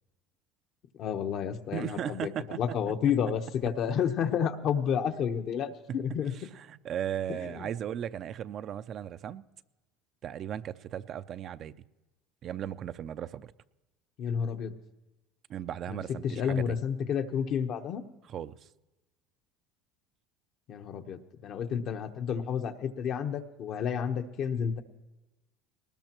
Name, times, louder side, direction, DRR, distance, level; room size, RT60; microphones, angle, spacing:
voice 1, 1.0-6.3 7.4-7.7 14.2-14.7 15.9-18.0 20.7-24.8, left 8 dB, 55° left, 1.0 m, -31 dB
voice 2, 1.7-2.6 5.9-6.0 6.3-9.4 10.2-11.8 12.4-13.5 15.5-16.8 18.3-18.6, right 10 dB, 45° right, 0.5 m, -36 dB
19.5 x 19.5 x 3.0 m
supercardioid pair, 100°, 0 cm